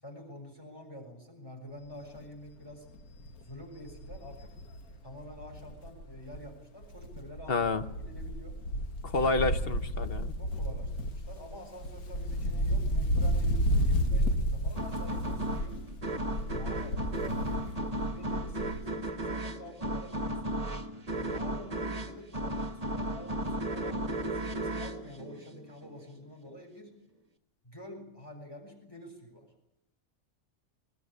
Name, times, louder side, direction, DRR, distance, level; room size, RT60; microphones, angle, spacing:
voice 1, 0.0-2.9 3.4-4.6 5.0-8.6 10.4-15.8 16.5-17.8 18.1-20.6 21.1-26.9 27.6-29.5, left 1 dB, 15° left, 3 dB, 6.3 m, -48 dB
Wind, 1.9-2.2 2.6-2.7 3.0-6.5 6.8-19.0 19.3-19.4, equal, 85° left, 2.0 m, -32 dB
voice 2, 7.5-7.8 9.0-10.3, left 3 dB, 45° left, 10 dB, 1.2 m, -29 dB
sound 1, 14.8-26.0, right 1 dB, 25° right, 1.5 m, -35 dB
20.5 x 20.0 x 9.8 m, 0.84 s
omnidirectional pair, 1.5 m